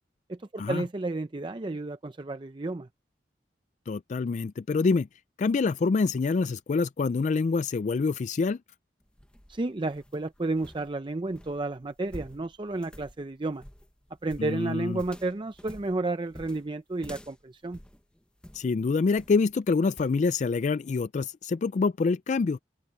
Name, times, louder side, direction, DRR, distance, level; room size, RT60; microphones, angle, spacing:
voice 1, 0.3-2.9 9.5-13.6 14.2-17.8, right 2 dB, 30° right, 0.5 m, -32 dB
voice 2, 3.9-5.1 5.4-8.6 14.4-15.0 18.5-22.6, left 4 dB, 45° left, 0.3 m, -26 dB
sound 1, 9.0-18.7 19.2-19.5 20.0-20.2, equal, 5° left, 0.9 m, -49 dB
open air
head